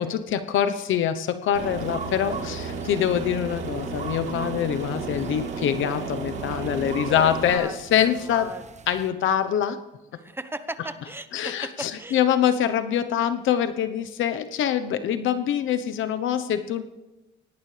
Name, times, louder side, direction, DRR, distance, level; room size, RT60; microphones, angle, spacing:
voice 1, 0.0-8.5 8.9-9.8 11.3-16.8, left 9 dB, 80° left, 10 dB, 1.0 m, -24 dB
Aircraft, 1.5-7.5, right 4 dB, 70° right, 3.5 m, -33 dB
sound 1, 1.7-9.1, right 6 dB, 35° right, 1.1 m, -43 dB
voice 2, 6.6-8.6 8.9-9.1 10.2-12.2, right 1 dB, 10° right, 11 dB, 1.1 m, -37 dB
23.5 x 18.0 x 3.4 m, 1.1 s
cardioid pair, 90°, 20 cm